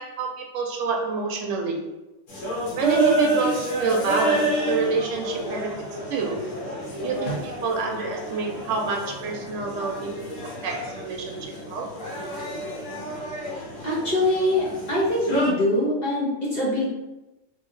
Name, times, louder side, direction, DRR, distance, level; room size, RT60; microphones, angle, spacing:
voice 1, 0.0-1.9 2.8-5.8 6.1-6.5 7.0-10.3 10.6-11.9, right 4 dB, 75° right, 1 dB, 0.9 m, -27 dB
sound 1, 2.3-15.5, right 1 dB, 80° left, 1.2 m, -29 dB
voice 2, 13.8-16.9, left 1 dB, 40° left, -6 dB, 0.7 m, -23 dB
2.8 x 2.7 x 2.5 m, 1.0 s
omnidirectional pair, 1.3 m